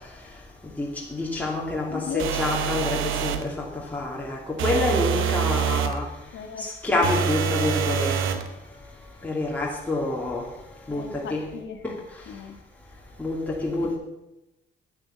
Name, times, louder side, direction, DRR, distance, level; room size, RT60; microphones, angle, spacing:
voice 1, 0.8-6.1 6.6-8.4 9.2-10.5 10.9-11.4 11.8-11.9 13.2-14.0, left 2 dB, 10° left, -4 dB, 2.8 m, -27 dB
voice 2, 1.9-2.3 6.3-6.7 10.9-11.8 12.3-12.6, left 7 dB, 70° left, 6 dB, 1.8 m, -36 dB
sound 1, 2.2-3.5 4.6-6.0 7.0-8.5, right 8 dB, 85° right, 1.0 m, -25 dB
10.0 x 9.0 x 6.9 m, 0.94 s
cardioid pair, 90°, 20 cm